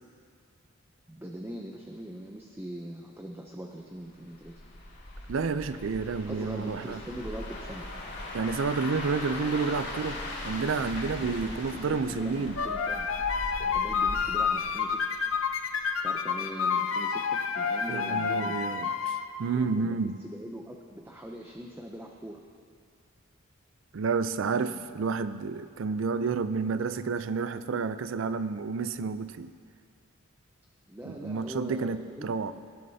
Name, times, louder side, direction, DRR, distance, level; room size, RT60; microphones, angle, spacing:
voice 1, 1.1-4.6 6.3-7.9 11.2-13.1 13.7-15.0 16.0-18.6 19.5-22.4 24.5-25.2 30.9-32.4, right 1 dB, 10° right, 1 dB, 0.5 m, -42 dB
sound 1, 4.3-15.4 15.8-16.1, left 1 dB, 55° left, 2.3 m, -40 dB
voice 2, 5.3-7.0 8.3-10.2 10.4-12.6 17.9-20.2 23.9-29.5 31.1-32.5, right 4 dB, 70° right, 13 dB, 0.4 m, -30 dB
sound 2, 12.6-19.2, left 6 dB, 75° left, 0.6 m, -29 dB
18.0 x 11.0 x 2.7 m, 2.2 s
head